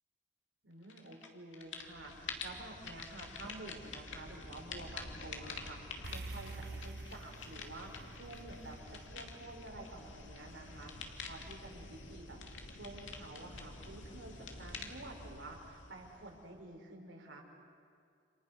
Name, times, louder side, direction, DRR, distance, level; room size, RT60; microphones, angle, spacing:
voice 1, 0.6-17.4, right 2 dB, 85° right, 0 dB, 5.1 m, -50 dB
sound 1, 0.9-1.3 1.5-16.5, left 3 dB, 90° left, 2.7 m, -48 dB
sound 2, 6.0-10.5, right 3 dB, 55° right, 0.7 m, -48 dB
29.5 x 28.0 x 6.6 m, 2.4 s
head